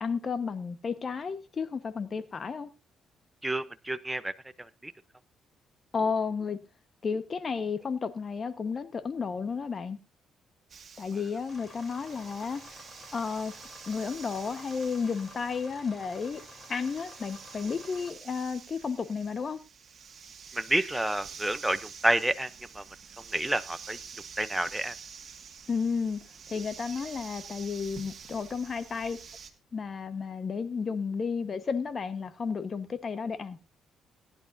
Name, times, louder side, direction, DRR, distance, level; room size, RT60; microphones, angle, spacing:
voice 1, 0.0-2.7 5.9-6.6 7.0-10.0 11.0-12.7 13.1-13.5 13.9-16.4 16.7-19.6 25.7-26.2 26.5-29.2 29.7-33.6, left 5 dB, 40° left, 1.3 m, -32 dB
voice 2, 3.4-4.3 4.8-4.9 20.6-22.5 22.8-22.9 23.3-24.0 24.4-24.9, right 1 dB, 10° right, 0.7 m, -29 dB
sound 1, 10.7-29.5, right 6 dB, 50° right, 1.9 m, -48 dB
sound 2, 11.5-18.1, left 2 dB, 25° left, 3.6 m, -51 dB
18.0 x 10.5 x 2.7 m
cardioid pair, 90°, 0 cm